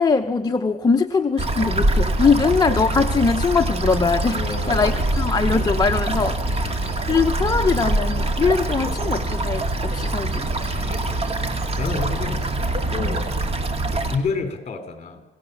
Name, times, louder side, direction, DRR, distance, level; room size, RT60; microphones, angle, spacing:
voice 1, 0.0-10.5 13.0-13.2, left 5 dB, 20° left, 5 dB, 0.9 m, -22 dB
sound 1, 1.4-14.2, right 2 dB, 35° right, 2.4 m, -24 dB
voice 2, 4.3-5.2 6.4-7.1 10.7-11.3 11.8-12.4 12.9-13.3 13.9-15.2, left 4 dB, 40° left, 7 dB, 4.2 m, -30 dB
28.0 x 18.0 x 7.2 m, 0.99 s
cardioid pair, 130°, 17 cm